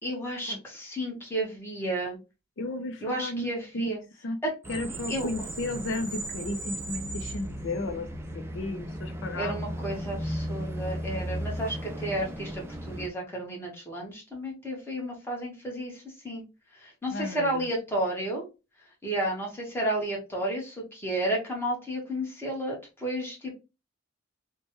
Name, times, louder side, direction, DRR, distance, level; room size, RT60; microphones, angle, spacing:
voice 1, 0.0-2.2 3.0-4.0 5.1-5.3 9.4-16.4 16.8-18.5 19.0-23.5, right 1 dB, 10° left, -2 dB, 1.1 m, -32 dB
voice 2, 2.6-3.9 4.2-4.4 4.7-9.8 17.1-17.7, left 2 dB, 60° left, 5 dB, 0.5 m, -34 dB
sound 1, 4.6-13.1, equal, 10° right, 0.4 m, -35 dB
3.2 x 2.1 x 2.9 m, 0.28 s
head